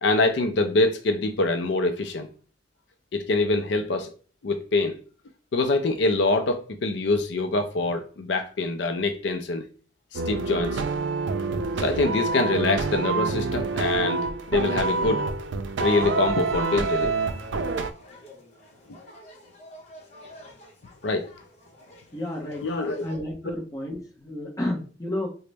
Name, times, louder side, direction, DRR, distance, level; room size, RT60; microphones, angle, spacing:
voice 1, 0.0-2.3 3.1-4.1 4.4-4.9 5.5-9.7 10.1-10.8 11.8-15.2 15.8-17.2 21.0-21.3 22.6-23.0, left 2 dB, 70° left, 0.4 m, -24 dB
sound 1, 10.1-17.9, right 4 dB, 80° right, 0.4 m, -27 dB
sound 2, 16.0-23.2, left 1 dB, 40° left, 1.1 m, -48 dB
voice 2, 22.1-22.6 23.0-25.3, left 1 dB, 20° left, 0.8 m, -31 dB
3.9 x 2.1 x 3.3 m
head